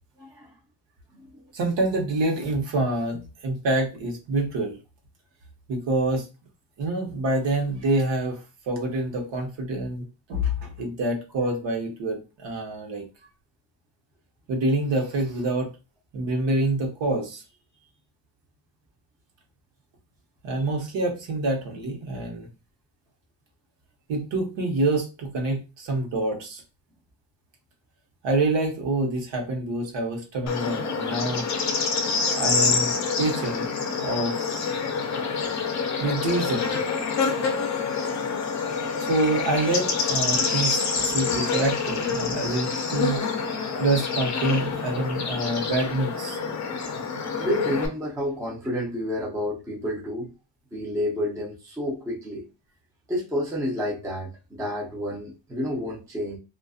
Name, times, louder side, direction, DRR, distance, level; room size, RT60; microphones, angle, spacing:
voice 1, 0.2-0.5 1.3-1.4 47.4-50.3 50.7-52.4 53.1-56.4, left 1 dB, 5° right, -4 dB, 0.5 m, -29 dB
voice 2, 1.5-4.8 5.7-6.3 6.8-8.4 8.7-13.0 14.5-15.7 16.1-17.4 20.4-22.5 24.1-26.6 28.2-31.5 32.4-33.7 34.0-34.4 36.0-36.7 39.0-43.2 43.8-46.4, right 2 dB, 70° right, 1 dB, 1.0 m, -26 dB
Bird / Insect, 30.5-47.9, left 5 dB, 40° left, 0.5 m, -27 dB
2.5 x 2.4 x 2.3 m, 0.29 s
cardioid pair, 145°, 45 cm